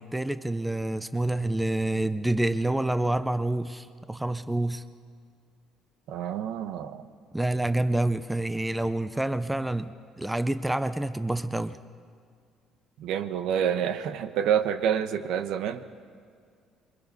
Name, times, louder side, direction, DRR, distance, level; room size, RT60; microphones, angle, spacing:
voice 1, 0.0-4.8 7.3-11.8, right 1 dB, 5° right, 12 dB, 0.5 m, -28 dB
voice 2, 6.1-7.0 13.0-15.8, right 9 dB, 75° right, 10 dB, 1.0 m, -28 dB
27.0 x 23.5 x 5.4 m, 2.1 s
cardioid pair, 145°, 0 cm